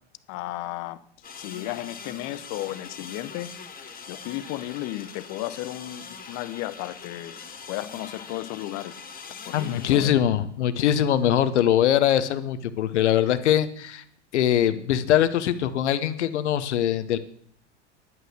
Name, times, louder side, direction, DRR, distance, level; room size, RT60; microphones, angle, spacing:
voice 1, 0.3-1.0 1.4-3.5 4.1-7.4 7.7-8.9 9.5-10.1, left 16 dB, 50° left, 15 dB, 0.9 m, -34 dB
sound 1, 1.2-10.0, left 5 dB, 25° left, 1.8 m, -42 dB
voice 2, 9.5-14.0 14.3-17.2, left 10 dB, 70° left, 12 dB, 1.2 m, -22 dB
11.0 x 9.2 x 6.3 m, 0.62 s
hypercardioid pair, 85°, 35 cm